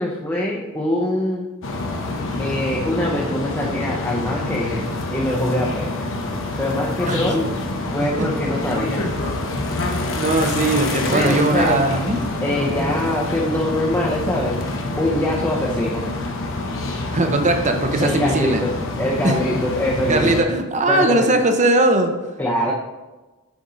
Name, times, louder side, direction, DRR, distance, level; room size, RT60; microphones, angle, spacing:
voice 1, 0.0-1.5 2.4-4.8 5.1-5.9 6.6-7.5 7.9-9.0 11.1-11.8 12.4-14.6 15.0-16.1 18.0-18.7 19.0-20.4 20.9-21.3 22.4-22.7, left 1 dB, 10° left, -3 dB, 0.7 m, -23 dB
sound 1, 1.6-20.4, left 2 dB, 60° left, 0.9 m, -26 dB
voice 2, 10.1-12.2 17.1-18.6 19.2-19.6 20.1-22.1, right 2 dB, 35° right, 5 dB, 0.7 m, -19 dB
7.0 x 5.2 x 3.8 m, 1.1 s
head